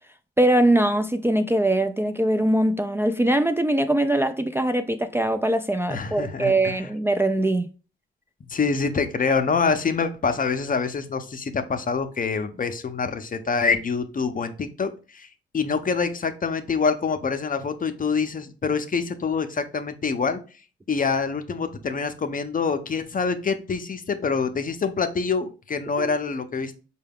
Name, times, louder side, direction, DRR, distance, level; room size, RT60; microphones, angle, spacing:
voice 1, 0.4-7.7 26.0-26.1, right 1 dB, 10° right, 0.3 m, -22 dB
voice 2, 5.9-6.9 8.5-15.3 15.5-20.4 20.9-26.7, left 5 dB, 40° left, 0.6 m, -26 dB
4.5 x 2.2 x 3.5 m
cardioid pair, 55°, 21 cm